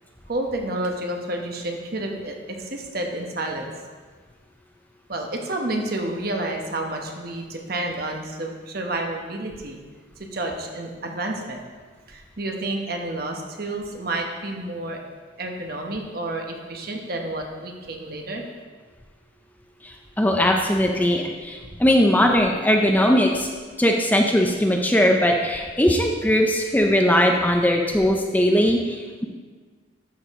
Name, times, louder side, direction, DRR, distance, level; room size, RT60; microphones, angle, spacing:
voice 1, 0.3-3.7 5.1-9.8 10.3-11.6 12.1-15.0 15.4-18.4, right 2 dB, 50° right, 2 dB, 1.1 m, -30 dB
voice 2, 19.8-23.5 23.8-29.3, equal, 10° left, 1 dB, 0.6 m, -20 dB
12.0 x 6.5 x 3.7 m, 1.5 s
head